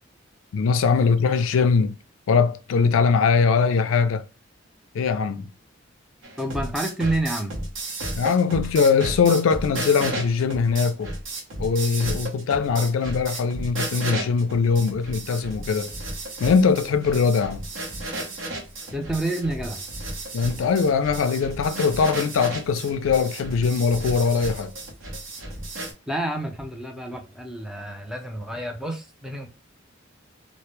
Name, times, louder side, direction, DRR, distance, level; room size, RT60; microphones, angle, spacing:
voice 1, 0.5-1.9 2.3-4.2 4.9-5.5 8.2-11.1 11.6-15.9 16.4-17.6 20.3-24.7, left 5 dB, 85° left, 0.4 m, -21 dB
sound 1, 6.2-25.9, right 2 dB, 80° right, 0.7 m, -33 dB
voice 2, 6.4-7.5 18.9-19.8 26.1-29.5, right 1 dB, 5° right, 0.4 m, -29 dB
2.1 x 2.0 x 2.9 m
head